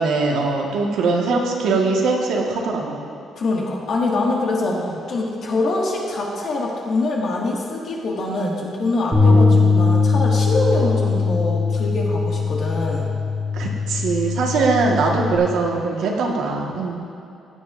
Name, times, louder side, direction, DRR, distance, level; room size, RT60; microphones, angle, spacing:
voice 1, 0.0-3.0 4.7-4.9 9.3-9.6 13.5-16.9, right 3 dB, 75° right, -1 dB, 1.4 m, -21 dB
voice 2, 3.3-13.1, left 2 dB, 55° left, -2 dB, 1.8 m, -24 dB
Bass guitar, 9.1-15.4, left 4 dB, 5° right, 2.1 m, -20 dB
15.0 x 9.6 x 2.5 m, 2.7 s
cardioid pair, 140°, 0 cm